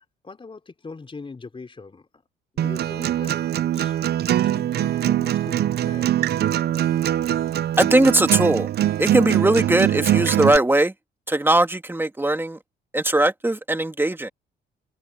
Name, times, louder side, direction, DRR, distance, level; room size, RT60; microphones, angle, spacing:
voice 1, 0.0-2.1 2.5-3.4 3.7-4.0 4.3-6.1, left 4 dB, 25° left, 4.2 m, -41 dB
Acoustic guitar, 2.6-10.6, right 12 dB, 55° right, 0.5 m, -22 dB
voice 2, 7.8-8.7 9.0-10.9 11.3-12.6 12.9-14.3, right 1 dB, 10° right, 1.9 m, -19 dB
cardioid pair, 90°, 20 cm